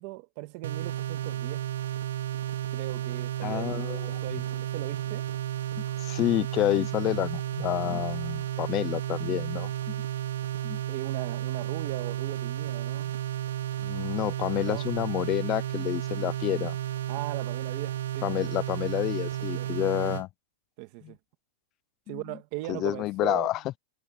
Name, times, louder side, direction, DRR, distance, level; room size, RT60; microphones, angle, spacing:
voice 1, 0.0-1.7 2.7-3.8 4.1-5.3 10.9-13.1 14.7-14.9 17.1-18.3 19.5-19.7 20.8-21.2 22.1-23.5, right 20 dB, 40° right, 1.9 m, -38 dB
sound 1, 0.6-20.2, right 12 dB, 85° right, 1.2 m, -32 dB
voice 2, 3.4-4.2 5.7-10.0 10.6-10.8 13.8-16.8 18.2-20.3 21.0-21.1 22.1-22.2 22.7-23.6, left 15 dB, 25° left, 0.6 m, -29 dB
supercardioid pair, 170°, 0 cm